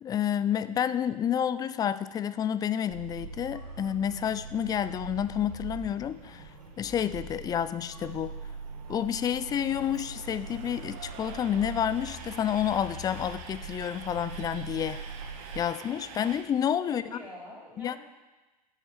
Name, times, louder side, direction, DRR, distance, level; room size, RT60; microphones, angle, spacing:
voice 1, 0.0-6.4 6.8-8.3 8.9-15.0 15.6-17.0 17.8-18.0, left 9 dB, 20° left, 15 dB, 0.4 m, -29 dB
sound 1, 2.9-15.6, right 4 dB, 90° right, 3.3 m, -42 dB
Train, 3.0-16.4, right 5 dB, 50° right, 1.6 m, -48 dB
voice 2, 16.9-18.0, left 1 dB, ahead, -5 dB, 3.7 m, -45 dB
10.5 x 6.1 x 7.4 m, 1.2 s
figure-of-eight pair, 95°, 21 cm